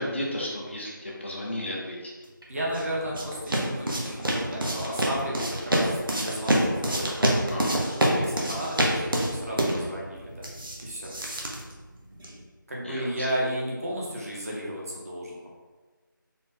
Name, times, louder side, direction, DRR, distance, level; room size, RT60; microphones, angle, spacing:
voice 1, 0.0-2.0 7.5-7.8 12.8-13.0, left 1 dB, 35° left, -3 dB, 0.6 m, -33 dB
sound 1, 2.4-12.4, right 1 dB, 80° right, 0.9 m, -27 dB
voice 2, 2.5-7.3 8.0-10.5 10.8-11.1 12.7-15.5, equal, 45° right, -4 dB, 1.0 m, -33 dB
4.1 x 2.4 x 3.6 m, 1.3 s
figure-of-eight pair, 170°, 11 cm